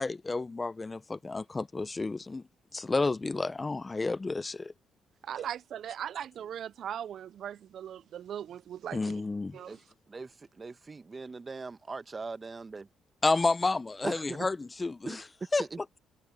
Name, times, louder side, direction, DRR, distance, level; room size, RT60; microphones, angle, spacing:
voice 1, 0.0-2.4 2.7-4.7 8.9-9.6 13.2-15.2 15.5-15.6, left 3 dB, 25° left, 0.7 m, -30 dB
voice 2, 5.2-9.2 9.5-9.8, right 9 dB, 65° right, 0.4 m, -39 dB
voice 3, 10.1-12.9 14.0-14.5 15.0-15.2 15.6-15.8, right 4 dB, 30° right, 1.1 m, -40 dB
cardioid pair, 90°, 0 cm